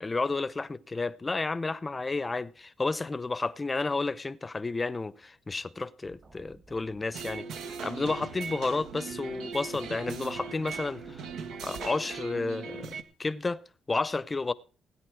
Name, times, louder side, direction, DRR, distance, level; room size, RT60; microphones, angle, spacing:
voice 1, 0.0-7.5 7.8-11.3 11.6-12.9 13.2-13.6 13.9-14.5, left 3 dB, 25° left, 0.7 m, -31 dB
sound 1, 6.0-12.2, right 3 dB, 35° right, 1.9 m, -57 dB
sound 2, 7.1-13.0, right 5 dB, 80° right, 1.3 m, -39 dB
17.0 x 9.6 x 4.7 m
cardioid pair, 90°, 0 cm